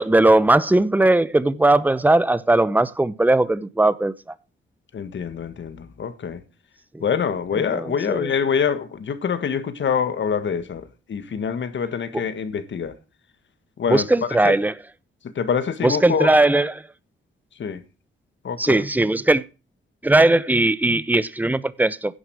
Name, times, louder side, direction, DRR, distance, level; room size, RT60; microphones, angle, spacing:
voice 1, 0.0-4.1 6.9-7.0 7.5-8.3 12.1-12.2 13.9-14.8 15.8-16.8 18.6-19.4 20.0-22.2, right 2 dB, 10° right, 0.8 m, -19 dB
voice 2, 4.9-6.4 7.0-12.9 13.8-14.1 14.4-14.5 15.4-16.3 17.6-17.8 18.4-18.8, left 7 dB, 65° left, 1.7 m, -25 dB
11.0 x 7.5 x 6.3 m
cardioid pair, 75°, 20 cm